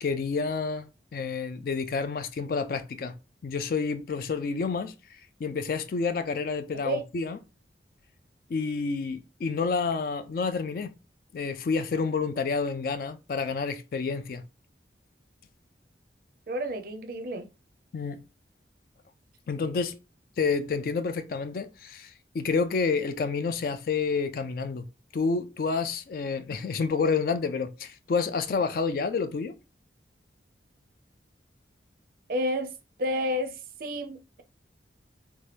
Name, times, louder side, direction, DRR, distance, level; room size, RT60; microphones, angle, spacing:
voice 1, 0.0-3.1 3.4-7.4 8.5-10.9 11.3-14.4 17.9-18.2 19.5-20.0 20.4-24.8 25.1-29.6, left 4 dB, 50° left, 0.3 m, -29 dB
voice 2, 16.5-17.4 32.3-32.7 33.0-34.4, equal, 50° right, 0.4 m, -30 dB
2.8 x 2.1 x 3.2 m
head